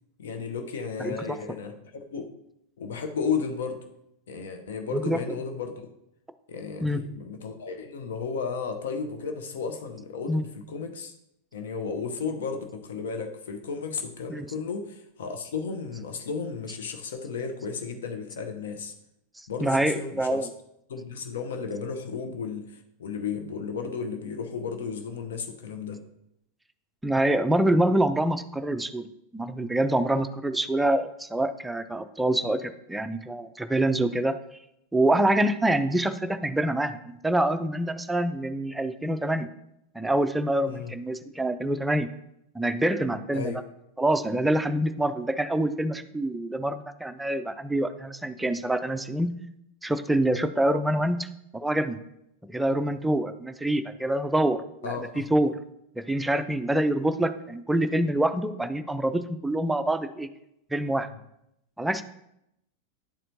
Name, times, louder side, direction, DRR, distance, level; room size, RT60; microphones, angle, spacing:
voice 1, 0.2-2.3 2.8-3.8 4.3-5.7 6.5-11.1 11.5-18.9 19.5-20.5 20.9-26.0 40.7-40.9 43.3-43.6 54.8-55.3, left 5 dB, 60° left, 5 dB, 0.8 m, -34 dB
voice 2, 4.9-5.4 6.8-7.0 10.3-10.4 14.3-14.5 19.6-20.5 27.0-29.1 29.3-34.4 34.9-39.5 39.9-42.1 42.5-43.5 44.0-49.3 49.8-51.3 51.5-52.0 52.5-55.6 56.0-60.3 60.7-61.1 61.8-62.0, right 1 dB, 5° right, 10 dB, 0.4 m, -26 dB
10.0 x 4.3 x 2.7 m, 0.81 s
figure-of-eight pair, 90°, 0 cm